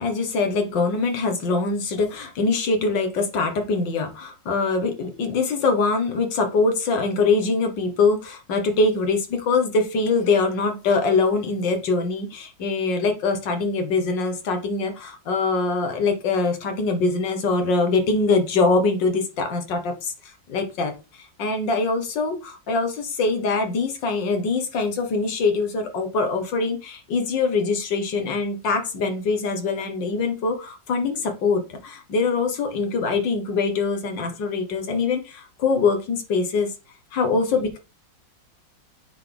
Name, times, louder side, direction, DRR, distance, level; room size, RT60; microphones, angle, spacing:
voice 1, 0.0-20.9 21.2-36.7 37.1-37.8, left 4 dB, 75° left, 5 dB, 2.0 m, -23 dB
8.7 x 4.1 x 3.4 m, 0.30 s
omnidirectional pair, 2.0 m